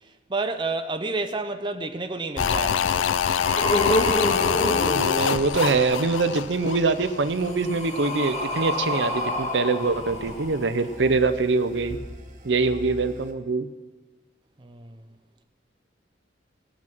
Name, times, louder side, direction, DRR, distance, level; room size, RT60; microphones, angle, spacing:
voice 1, 0.3-3.1 14.6-15.0, right 3 dB, 25° right, 0.6 m, -30 dB
sound 1, 2.4-7.5 7.8-7.9, left 7 dB, 80° left, 0.4 m, -25 dB
sound 2, 2.4-2.5 3.0-5.8 7.0-10.9 11.8-11.9, left 1 dB, 35° left, 1.6 m, -28 dB
sound 3, 3.7-13.3, equal, 40° right, 1.4 m, -44 dB
voice 2, 4.9-12.0 12.4-13.7, right 4 dB, 65° right, 0.6 m, -24 dB
18.5 x 6.2 x 6.0 m
head